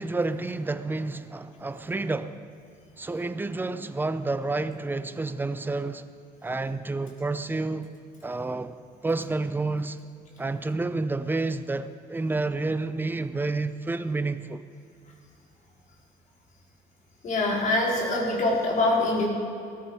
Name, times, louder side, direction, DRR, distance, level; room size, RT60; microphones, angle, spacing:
voice 1, 0.0-2.4 3.0-6.0 6.4-7.9 8.2-10.0 10.4-14.6, right 3 dB, 10° right, 12 dB, 0.6 m, -29 dB
voice 2, 17.2-19.3, left 2 dB, 50° left, -2 dB, 4.2 m, -24 dB
18.0 x 14.0 x 4.8 m, 2.5 s
cardioid pair, 110°, 17 cm